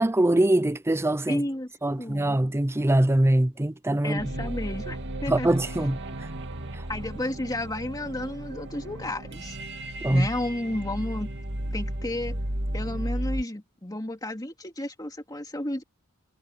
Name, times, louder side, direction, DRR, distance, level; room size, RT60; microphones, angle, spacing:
voice 1, 0.0-1.4 1.8-4.3 5.3-6.3 6.7-6.8 10.0-10.3, right 1 dB, 10° right, 0.5 m, -23 dB
voice 2, 1.3-1.7 2.0-2.4 4.0-5.5 6.9-9.6 10.1-11.3 11.7-12.4 12.7-15.8, left 1 dB, 15° left, 2.6 m, -32 dB
sound 1, 4.2-13.4, right 1 dB, 55° right, 2.5 m, -34 dB
head